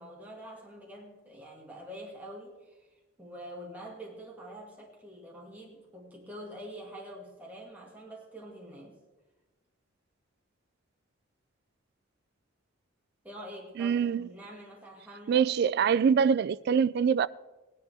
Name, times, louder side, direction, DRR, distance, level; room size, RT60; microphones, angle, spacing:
voice 1, 0.0-2.9 3.2-9.0 13.2-15.5, equal, 10° right, 1.9 m, -46 dB
voice 2, 13.8-14.3 15.3-17.3, right 7 dB, 55° right, 0.3 m, -24 dB
17.5 x 10.5 x 3.5 m
head